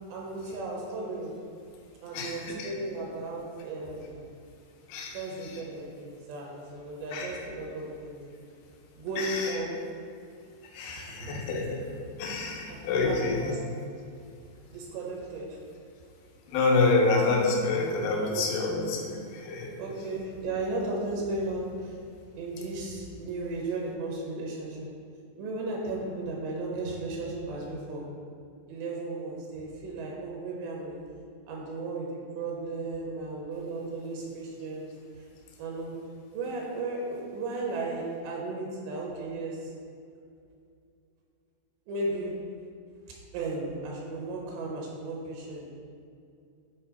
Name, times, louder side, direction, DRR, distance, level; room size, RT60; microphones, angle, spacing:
voice 1, 0.1-1.3 2.0-4.2 5.1-8.2 9.0-9.8 10.9-11.3 12.7-12.8 13.1-13.6 14.7-15.6 18.3-18.5 19.8-22.0 22.4-24.9 25.4-28.0 28.7-31.0 31.5-32.1 32.3-34.9 35.2-35.3 35.6-36.0 36.3-39.7 41.9-42.3 43.3-45.7, right 2 dB, 80° right, -2 dB, 2.9 m, -35 dB
voice 2, 2.1-2.7 4.9-5.6 7.1-7.4 9.2-9.6 10.6-11.9 12.2-13.6 16.5-19.7, left 3 dB, 80° left, 0 dB, 2.5 m, -28 dB
8.8 x 4.3 x 2.9 m, 2.4 s
omnidirectional pair, 5.1 m